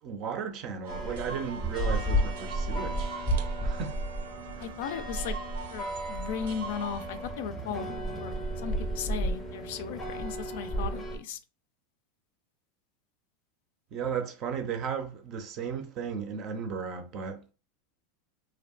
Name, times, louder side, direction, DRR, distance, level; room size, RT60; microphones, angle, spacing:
voice 1, 0.0-4.0 4.6-4.7 13.9-17.5, right 6 dB, 35° right, 0.5 m, -35 dB
sound 1, 0.8-7.3, right 5 dB, 80° right, 0.5 m, -43 dB
sound 2, 0.9-11.2, right 1 dB, 10° left, 0.6 m, -33 dB
voice 2, 4.6-5.4 5.7-7.9 8.2-11.4, left 8 dB, 65° left, 0.3 m, -36 dB
2.6 x 2.1 x 2.4 m
supercardioid pair, 160°, 0 cm